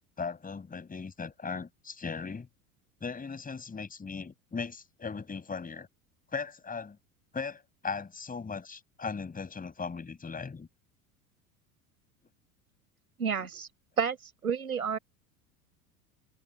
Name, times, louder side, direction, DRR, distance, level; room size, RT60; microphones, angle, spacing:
voice 1, 0.2-2.5 3.0-5.9 6.3-7.0 7.3-10.7 13.3-13.5, left 5 dB, 20° left, 6.5 m, -38 dB
voice 2, 13.2-13.7 14.0-14.2 14.4-15.0, right 6 dB, 85° right, 5.7 m, -30 dB
figure-of-eight pair, 75°, 43 cm